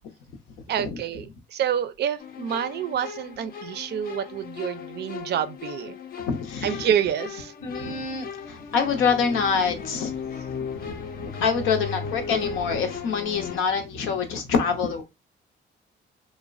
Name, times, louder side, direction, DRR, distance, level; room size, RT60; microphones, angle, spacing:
voice 1, 0.7-6.0 6.6-7.5, right 9 dB, 60° right, 0.4 m, -28 dB
sound 1, 2.2-13.6, left 6 dB, 50° left, 0.5 m, -36 dB
voice 2, 6.2-6.8 7.6-10.1 10.8-15.0, left 5 dB, 90° left, 0.7 m, -26 dB
3.0 x 2.1 x 2.4 m
cardioid pair, 90°, 20 cm